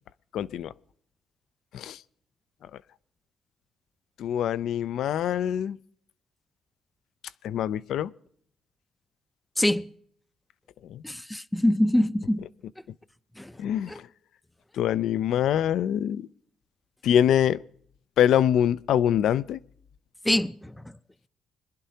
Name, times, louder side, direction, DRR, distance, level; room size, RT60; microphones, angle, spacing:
voice 1, 0.3-0.7 1.7-2.0 4.2-5.8 7.4-8.1 10.9-11.0 13.6-13.9 14.8-16.3 17.0-17.6 18.2-19.6, left 10 dB, 75° left, 0.4 m, -24 dB
voice 2, 9.6-9.9 11.0-12.4 13.4-13.5 13.9-14.0 20.3-20.7, left 1 dB, 10° left, 0.4 m, -24 dB
25.0 x 11.0 x 2.8 m
cardioid pair, 90°, 0 cm